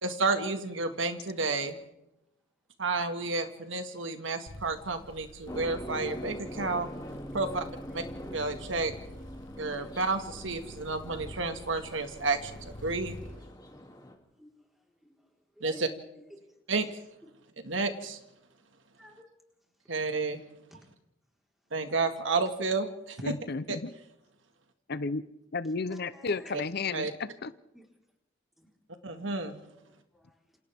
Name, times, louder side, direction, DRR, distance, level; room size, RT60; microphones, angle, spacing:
voice 1, 0.0-1.8 2.8-6.9 7.3-7.7 7.9-8.0 8.3-8.9 9.6-13.1 15.6-15.9 16.7-16.9 17.6-18.2 19.9-20.4 21.7-23.3 23.7-23.8 26.5-26.6 26.9-27.1 29.0-29.6, right 3 dB, 80° right, 6 dB, 2.0 m, -31 dB
sound 1, 4.5-13.4, equal, 80° left, 1.6 m, -47 dB
sound 2, 5.5-14.1, equal, 20° left, 2.8 m, -43 dB
voice 2, 7.1-7.6 13.7-13.8 14.4-14.7 15.0-15.1 15.5-15.9 16.3-16.6 19.0-19.3 20.7-20.8 25.9-26.5 27.7-27.9 28.6-28.7 29.9-30.6, left 1 dB, ahead, -1 dB, 4.3 m, -53 dB
voice 3, 23.2-23.9 24.9-25.2 25.5-27.5, left 4 dB, 55° left, 14 dB, 0.7 m, -33 dB
28.0 x 27.0 x 3.6 m, 0.86 s
head